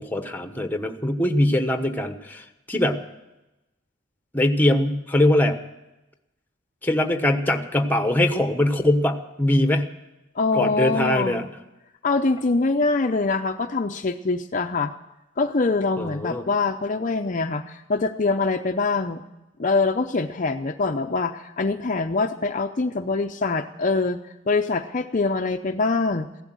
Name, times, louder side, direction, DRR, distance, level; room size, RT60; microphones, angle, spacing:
voice 1, 0.0-3.0 4.3-5.6 6.8-9.9 10.5-11.4 16.0-16.4, left 1 dB, 10° left, 7 dB, 1.1 m, -22 dB
voice 2, 10.4-11.5 12.0-14.9 15.4-19.2 19.6-26.3, left 3 dB, 40° left, 6 dB, 0.6 m, -24 dB
15.5 x 12.0 x 7.6 m, 0.97 s
head